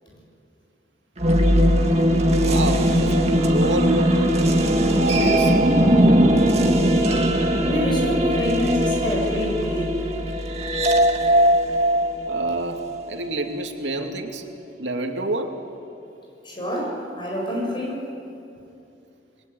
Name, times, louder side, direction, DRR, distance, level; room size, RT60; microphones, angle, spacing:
sound 1, 1.2-13.0, equal, 35° right, 2.1 m, -19 dB
voice 1, 2.4-4.1 5.0-5.8 12.3-14.4 14.8-15.5, right 1 dB, 85° right, 3 dB, 2.5 m, -28 dB
voice 2, 7.6-10.1 16.4-18.2, equal, 25° left, -1 dB, 7.2 m, -27 dB
27.5 x 22.0 x 9.3 m, 2.6 s
head